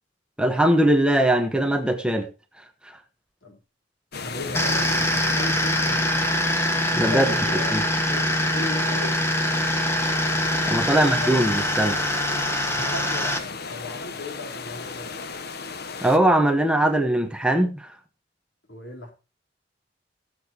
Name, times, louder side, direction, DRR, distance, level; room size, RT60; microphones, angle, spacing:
voice 1, 0.4-2.3 7.0-7.3 7.7-7.8 10.6-11.9 16.0-17.9, right 1 dB, 5° right, 1.2 m, -21 dB
sound 1, 4.1-16.2, left 4 dB, 55° left, 1.0 m, -36 dB
voice 2, 4.2-6.0 6.9-9.2 10.7-11.5 12.7-15.1 18.7-19.1, left 2 dB, 75° left, 3.8 m, -37 dB
sound 2, 4.5-13.4, left 1 dB, 15° left, 1.6 m, -24 dB
18.0 x 7.9 x 2.9 m
head